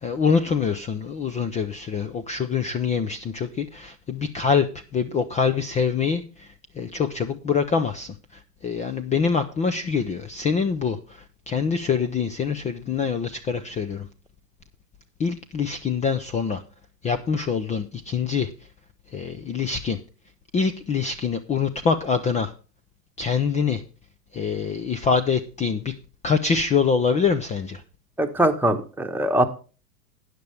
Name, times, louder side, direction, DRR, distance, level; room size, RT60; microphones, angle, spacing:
voice 1, 0.0-4.7 4.9-6.5 6.8-14.1 15.2-16.6 17.0-18.5 19.1-20.0 20.5-22.5 23.2-23.8 24.3-25.9 26.2-27.8, left 5 dB, 15° left, 12 dB, 0.5 m, -25 dB
voice 2, 28.2-29.5, right 1 dB, 5° right, 5 dB, 1.2 m, -22 dB
12.5 x 9.6 x 3.3 m, 0.35 s
hypercardioid pair, 110°, 48 cm